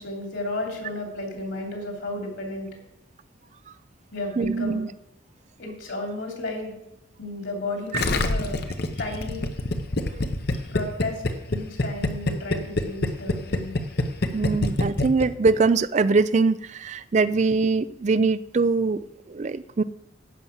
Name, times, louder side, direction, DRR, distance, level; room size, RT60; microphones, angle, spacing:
voice 1, 0.0-2.7 4.1-4.8 5.6-6.8 7.2-8.6 9.0-9.4 10.7-11.2 11.5-13.7, left 2 dB, 65° left, 0 dB, 3.0 m, -33 dB
voice 2, 4.4-4.9 14.3-19.8, right 4 dB, 35° right, 16 dB, 0.3 m, -22 dB
Gurgling, 7.9-15.5 15.8-15.9, left 2 dB, 50° left, 0.8 m, -25 dB
11.0 x 5.6 x 7.3 m, 0.88 s
head